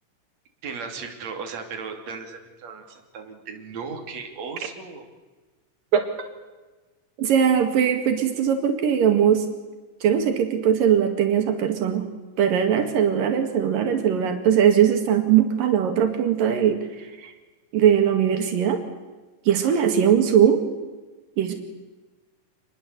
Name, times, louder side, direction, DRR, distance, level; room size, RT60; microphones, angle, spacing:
voice 1, 0.6-5.1 19.5-19.9, right 5 dB, 55° right, 4 dB, 3.9 m, -36 dB
voice 2, 7.2-9.5 10.0-12.0 12.4-17.3 17.7-18.8 19.5-20.6 21.4-21.5, right 8 dB, 85° right, 6 dB, 3.7 m, -20 dB
27.0 x 21.0 x 8.3 m, 1.2 s
omnidirectional pair, 3.9 m